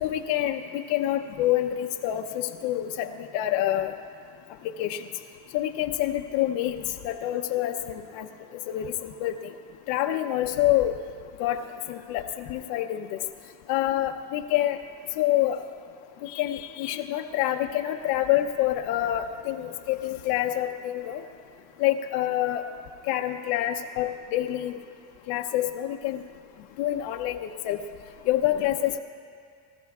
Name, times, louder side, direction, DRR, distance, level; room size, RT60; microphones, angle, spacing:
voice 1, 0.0-3.1 3.3-3.9 4.8-5.1 5.5-8.3 8.7-9.5 9.9-10.9 11.4-13.2 13.7-14.8 15.2-15.6 16.2-21.2 21.8-22.7 23.1-24.8 25.3-26.2 26.8-27.8 28.3-29.0, left 13 dB, 85° left, 4 dB, 0.8 m, -27 dB
24.5 x 14.0 x 2.4 m, 2.3 s
cardioid pair, 110°, 42 cm